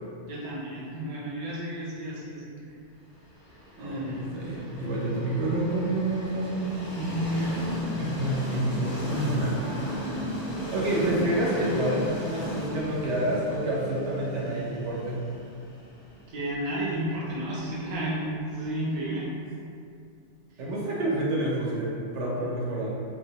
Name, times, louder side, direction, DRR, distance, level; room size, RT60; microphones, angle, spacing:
voice 1, 0.3-2.8 3.8-4.3 16.3-19.3 20.5-20.6 22.4-22.5, right 1 dB, 55° right, -6 dB, 0.4 m, -32 dB
Train, 3.3-19.2, equal, 45° left, 0.5 m, -36 dB
voice 2, 3.8-7.5 7.9-9.7 10.7-15.3 20.6-23.0, right 1 dB, 75° right, -5 dB, 0.9 m, -28 dB
2.2 x 2.0 x 2.7 m, 2.4 s
omnidirectional pair, 1.2 m